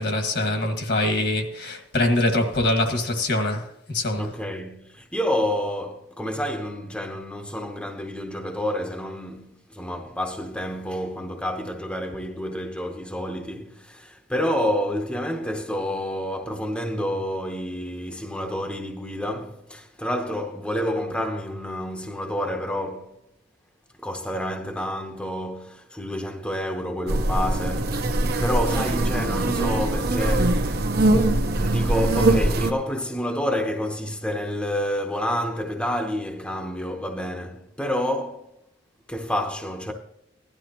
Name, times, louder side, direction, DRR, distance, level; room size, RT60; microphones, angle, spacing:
voice 1, 0.0-4.3, left 1 dB, 60° left, 1.8 m, -24 dB
voice 2, 4.2-23.2 24.0-30.8 31.6-38.5 39.1-39.9, equal, 5° left, 0.9 m, -29 dB
sound 1, 27.1-32.7, right 2 dB, 60° right, 1.0 m, -22 dB
17.0 x 11.5 x 2.9 m
head